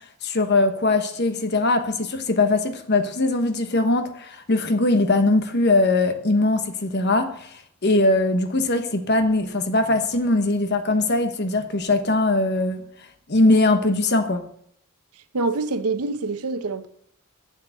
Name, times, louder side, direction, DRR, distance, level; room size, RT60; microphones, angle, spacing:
voice 1, 0.2-7.5 7.8-12.8 13.3-14.4, left 2 dB, 50° left, 1.1 m, -21 dB
voice 2, 15.3-16.9, right 3 dB, 85° right, 0.8 m, -25 dB
7.9 x 6.8 x 7.6 m
head